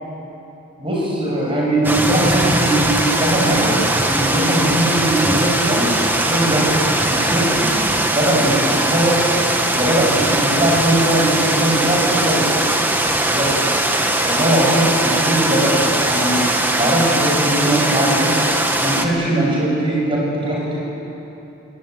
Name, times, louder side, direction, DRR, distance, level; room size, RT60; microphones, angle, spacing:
voice 1, 0.8-2.8 3.1-6.0 6.3-6.8 7.0-7.7 8.1-9.2 9.7-12.5 13.3-13.5 14.2-16.5 16.8-18.3 18.8-20.8, right 1 dB, 25° right, -4 dB, 7.2 m, -20 dB
sound 1, 1.8-19.1, right 1 dB, 10° right, 1.4 m, -19 dB
22.0 x 21.0 x 9.4 m, 3.0 s
head